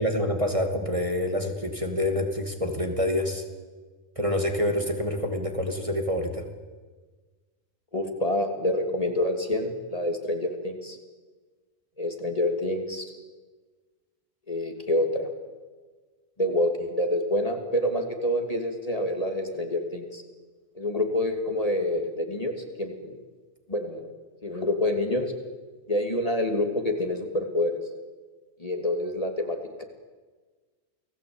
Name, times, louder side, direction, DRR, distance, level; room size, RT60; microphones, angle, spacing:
voice 1, 0.0-3.4 4.2-6.5, left 1 dB, 25° right, 4 dB, 2.7 m, -27 dB
voice 2, 7.9-11.0 12.0-13.0 14.5-15.3 16.4-20.2 20.7-23.2 23.7-24.0 24.4-25.3 25.9-27.8 28.6-29.8, left 1 dB, 30° left, 4 dB, 2.9 m, -27 dB
29.5 x 19.5 x 8.9 m, 1.4 s
omnidirectional pair, 1.2 m